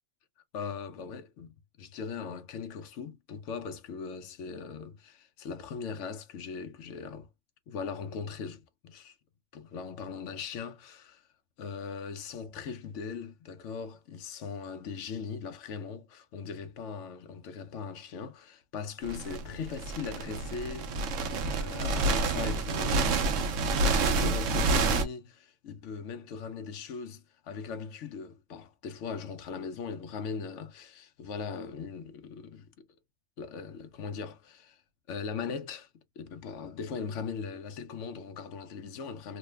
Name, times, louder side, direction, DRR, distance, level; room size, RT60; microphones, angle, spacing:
voice 1, 0.5-7.3 7.7-9.1 9.5-11.2 11.6-21.1 21.5-23.2 24.1-32.7 33.4-34.8 35.1-35.9 36.2-39.4, left 5 dB, 80° left, 1.0 m, -39 dB
sound 1, 19.0-25.0, right 3 dB, 85° right, 1.0 m, -28 dB
3.1 x 2.1 x 3.2 m
omnidirectional pair, 1.3 m